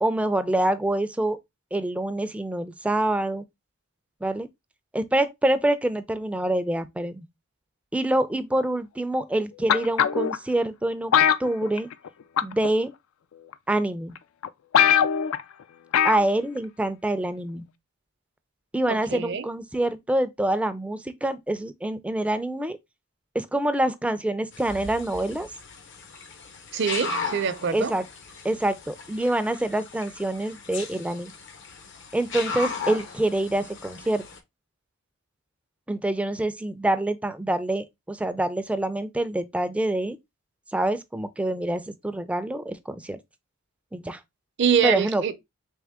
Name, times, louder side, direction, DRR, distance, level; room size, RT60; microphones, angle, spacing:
voice 1, 0.0-1.4 1.7-3.5 4.2-4.5 4.9-7.3 7.9-11.1 11.4-11.9 12.4-12.9 13.7-14.1 16.0-17.7 18.7-22.8 23.3-25.5 27.7-28.0 28.4-31.3 32.1-34.2 35.9-40.2 40.7-43.2 43.9-44.2 44.8-45.3, right 1 dB, 5° right, 0.3 m, -26 dB
sound 1, 9.7-10.4 11.1-12.1 12.4-12.7 13.5-13.6 14.2-14.3 14.4-14.5 14.7-15.4 15.9-16.3 16.6-16.7, left 9 dB, 80° left, 0.4 m, -20 dB
voice 2, 18.9-19.5 26.7-27.9 44.6-45.3, right 7 dB, 60° right, 0.5 m, -24 dB
sound 2, 24.5-34.4, left 4 dB, 60° left, 0.7 m, -37 dB
3.6 x 3.0 x 3.4 m
head